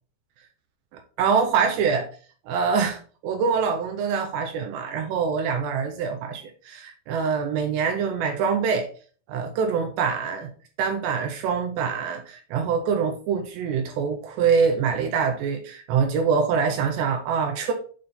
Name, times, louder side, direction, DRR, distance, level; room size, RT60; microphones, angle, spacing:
voice 1, 1.2-2.1 2.5-8.9 9.3-10.5 10.8-17.7, right 6 dB, 75° right, 4 dB, 2.8 m, -24 dB
8.7 x 3.7 x 3.8 m, 0.41 s
omnidirectional pair, 5.3 m